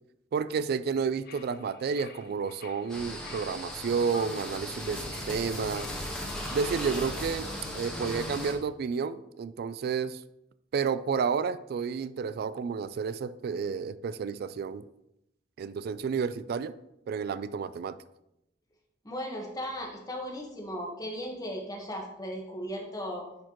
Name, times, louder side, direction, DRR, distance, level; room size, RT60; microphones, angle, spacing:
voice 1, 0.3-5.9 6.5-7.5 7.7-10.2 10.7-14.8 15.6-16.7 17.1-18.0, right 5 dB, 55° right, 15 dB, 0.3 m, -31 dB
sound 1, 1.2-3.6 4.1-4.2 4.8-6.6, left 5 dB, 55° left, 0.7 m, -50 dB
sound 2, 2.9-8.5, left 1 dB, 5° left, 1.3 m, -37 dB
voice 2, 19.0-23.3, equal, 20° left, 0 dB, 1.4 m, -36 dB
10.0 x 4.5 x 3.0 m, 0.84 s
head